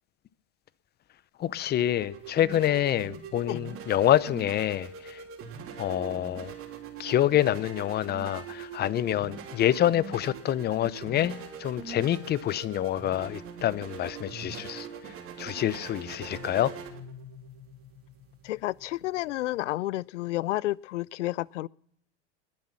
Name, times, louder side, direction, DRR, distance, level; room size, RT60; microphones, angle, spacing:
voice 1, 1.4-5.2 5.8-6.5 7.0-14.9 15.4-16.7, left 12 dB, 30° left, 0.7 m, -27 dB
sound 1, 1.4-19.6, right 6 dB, 40° right, 3.2 m, -43 dB
voice 2, 18.4-21.7, left 17 dB, 85° left, 0.5 m, -31 dB
21.0 x 7.6 x 5.8 m
hypercardioid pair, 105°, 35 cm